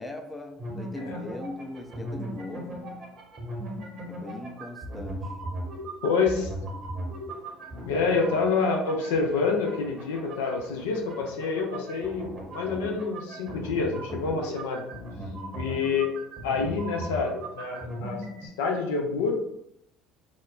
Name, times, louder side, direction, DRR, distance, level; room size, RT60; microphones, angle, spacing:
voice 1, 0.0-3.0 4.1-5.3 15.2-15.6, left 2 dB, 10° left, 3 dB, 0.4 m, -40 dB
sound 1, 0.6-18.5, right 1 dB, 45° right, 0.8 m, -38 dB
voice 2, 6.0-6.5 7.9-14.8 15.5-16.1 16.4-19.4, left 4 dB, 80° left, 2 dB, 0.4 m, -27 dB
2.9 x 2.0 x 2.3 m, 0.75 s
hypercardioid pair, 65°, 0 cm